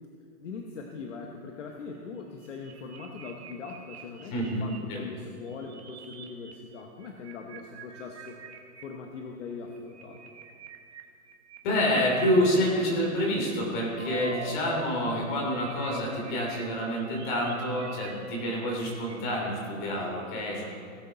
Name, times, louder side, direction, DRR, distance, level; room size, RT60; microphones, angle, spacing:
voice 1, 0.4-10.3, left 4 dB, 55° left, 2 dB, 1.1 m, -41 dB
sound 1, 2.2-4.8 5.3-6.5 6.8-8.8 9.5-12.5 13.3-14.8 15.1-19.5, right 6 dB, 50° right, 1.4 m, -46 dB
voice 2, 4.3-5.0 11.6-20.7, equal, 35° left, -2 dB, 3.0 m, -28 dB
17.5 x 8.0 x 4.0 m, 2.4 s
hypercardioid pair, 175°, 43 cm